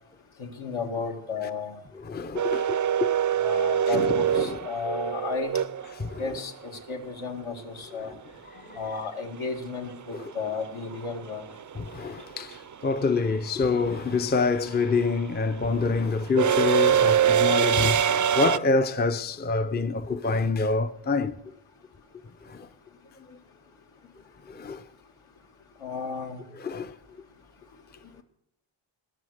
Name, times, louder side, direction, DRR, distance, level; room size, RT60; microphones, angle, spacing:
voice 1, 0.4-1.8 3.4-5.6 6.2-8.1 8.7-11.5 25.8-26.4, left 5 dB, 75° left, 2.0 m, -33 dB
voice 2, 2.0-3.1 3.5-3.6 3.9-4.6 6.0-6.4 8.0-8.2 8.5-8.8 10.1-10.3 11.7-21.4 22.4-22.7 23.3-23.4 24.5-24.8 26.6-26.9, left 4 dB, 20° left, 0.5 m, -27 dB
sound 1, 2.4-6.4 8.8-8.9 10.2-10.5 10.8-18.6, right 9 dB, 40° right, 0.4 m, -24 dB
20.0 x 7.1 x 6.4 m
wide cardioid pair, 105°, 49 cm